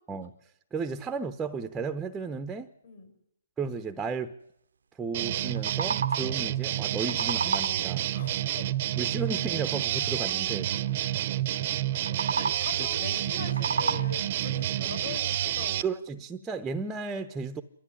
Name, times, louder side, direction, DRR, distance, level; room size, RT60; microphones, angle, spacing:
voice 1, 0.7-2.7 3.6-4.3 5.0-8.1 9.0-10.7 11.3-11.4 15.8-17.6, right 4 dB, 10° right, 0.8 m, -34 dB
sound 1, 5.1-15.8, right 12 dB, 40° right, 0.8 m, -29 dB
sound 2, 5.4-6.5 6.8-8.0 11.9-12.8 13.3-14.4, right 5 dB, 80° right, 0.9 m, -32 dB
voice 2, 8.1-8.7 12.0-15.8, left 6 dB, 55° left, 6.0 m, -42 dB
27.5 x 12.5 x 10.0 m
hypercardioid pair, 150°, 0 cm